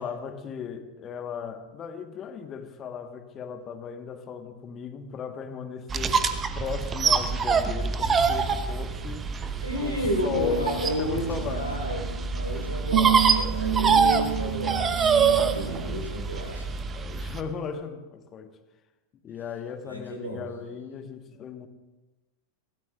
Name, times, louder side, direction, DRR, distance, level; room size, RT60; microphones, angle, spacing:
voice 1, 0.0-6.3 6.5-9.3 9.8-11.7 12.5-13.1 15.6-16.0 16.4-16.6 16.9-18.6 19.2-21.7, left 6 dB, 30° left, 8 dB, 1.2 m, -37 dB
sound 1, 5.9-17.4, right 5 dB, 20° right, 0.9 m, -25 dB
voice 2, 9.6-16.8 19.8-20.5, left 1 dB, 90° right, 1 dB, 3.9 m, -32 dB
sound 2, 9.7-16.0, right 11 dB, 50° right, 1.1 m, -31 dB
24.0 x 17.0 x 2.4 m, 1.1 s
figure-of-eight pair, 90°, 0 cm